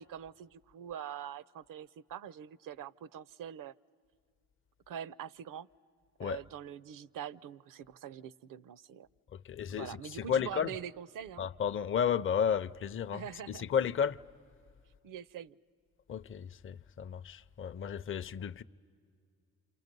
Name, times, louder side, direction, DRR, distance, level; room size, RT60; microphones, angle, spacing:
voice 1, 0.0-3.7 4.9-5.7 6.2-9.1 9.7-11.4 13.1-13.7 15.0-15.5, right 9 dB, 60° right, 0.6 m, -44 dB
voice 2, 9.3-10.7 11.4-14.2 16.1-18.6, left 8 dB, 35° left, 0.5 m, -33 dB
27.5 x 27.5 x 5.3 m
supercardioid pair, 60°, 37 cm